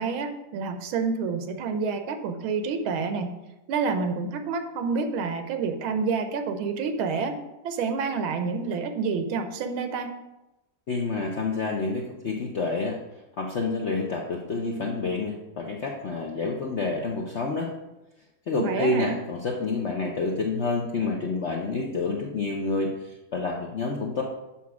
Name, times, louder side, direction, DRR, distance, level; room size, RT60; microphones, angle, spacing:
voice 1, 0.0-3.4 3.7-10.2 18.6-19.2, right 5 dB, 90° right, 7 dB, 1.6 m, -28 dB
voice 2, 10.9-13.0 13.4-17.7 18.5-24.2, left 3 dB, 70° left, 0 dB, 0.6 m, -28 dB
7.3 x 5.8 x 4.7 m, 1.0 s
omnidirectional pair, 2.2 m